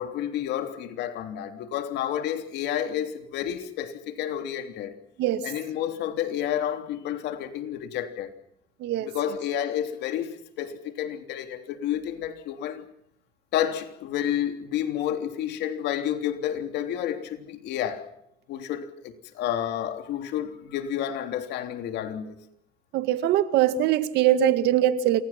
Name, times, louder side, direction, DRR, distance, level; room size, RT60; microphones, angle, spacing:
voice 1, 0.0-5.0 5.4-8.3 9.0-12.8 13.5-18.1 18.5-22.4, left 10 dB, 85° left, 3.3 m, -30 dB
voice 2, 22.9-25.2, right 11 dB, 85° right, 1.9 m, -22 dB
28.5 x 24.5 x 5.9 m
cardioid pair, 110°, 17 cm